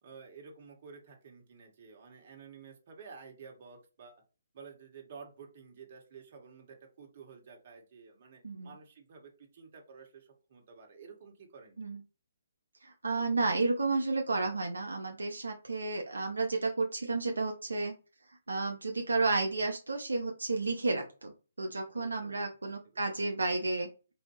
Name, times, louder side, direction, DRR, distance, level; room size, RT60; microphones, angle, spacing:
voice 1, 0.0-4.2 4.5-12.0 21.9-23.1, right 5 dB, 45° right, 2 dB, 1.4 m, -52 dB
voice 2, 8.4-8.7 11.8-12.0 12.8-18.0 18.5-23.9, right 3 dB, 90° right, 2 dB, 0.7 m, -32 dB
4.2 x 2.7 x 2.7 m, 0.33 s
hypercardioid pair, 145°, 0 cm